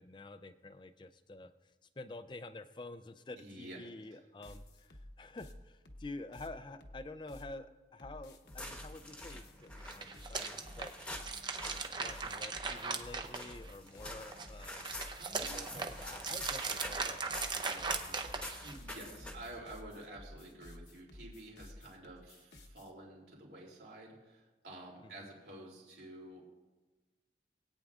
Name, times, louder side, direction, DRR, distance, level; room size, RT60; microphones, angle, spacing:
voice 1, 0.0-1.7 2.0-10.9 11.7-14.9 15.3-18.5, left 2 dB, 25° left, 11 dB, 0.4 m, -49 dB
voice 2, 3.4-3.8 15.2-15.6 18.6-26.4, right 1 dB, 70° right, -2 dB, 3.0 m, -50 dB
sound 1, 4.4-7.5 8.0-22.9, left 1 dB, 75° left, 1.0 m, -53 dB
sound 2, 8.5-19.6, left 1 dB, 5° left, 1.1 m, -48 dB
sound 3, 9.8-13.9 14.3-18.9, right 4 dB, 25° right, 0.6 m, -39 dB
20.5 x 9.0 x 2.5 m, 1.2 s
head